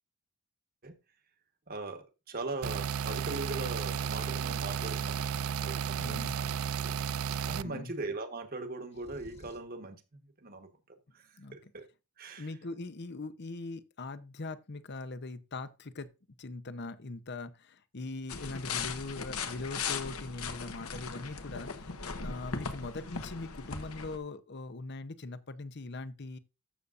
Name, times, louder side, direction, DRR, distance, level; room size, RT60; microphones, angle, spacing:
voice 1, 1.7-5.3 5.6-6.6 6.8-7.0 7.5-10.0 10.4-10.7 11.1-11.9 12.2-12.5, right 2 dB, 40° right, 1.3 m, -40 dB
sound 1, 2.6-7.6, right 7 dB, 65° right, 0.4 m, -33 dB
voice 2, 6.0-6.3 7.6-7.9 11.4-11.7 12.4-16.1 16.4-26.4, left 3 dB, 50° left, 0.8 m, -41 dB
sound 2, 8.9-9.8, equal, 30° left, 1.5 m, -54 dB
sound 3, 18.3-24.2, left 5 dB, 75° left, 1.2 m, -38 dB
14.0 x 6.8 x 2.6 m
head